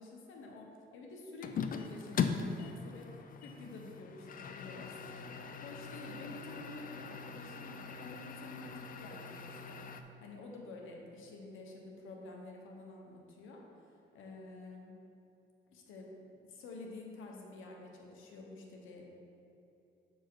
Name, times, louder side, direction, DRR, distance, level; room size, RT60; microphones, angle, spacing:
voice 1, 0.0-5.2 5.6-13.6 14.1-14.9 15.7-16.1 16.5-19.1, left 2 dB, 85° left, 0 dB, 1.0 m, -49 dB
sound 1, 1.4-10.0, left 6 dB, 45° left, 0.4 m, -40 dB
6.9 x 4.5 x 4.7 m, 2.8 s
cardioid pair, 90°, 20 cm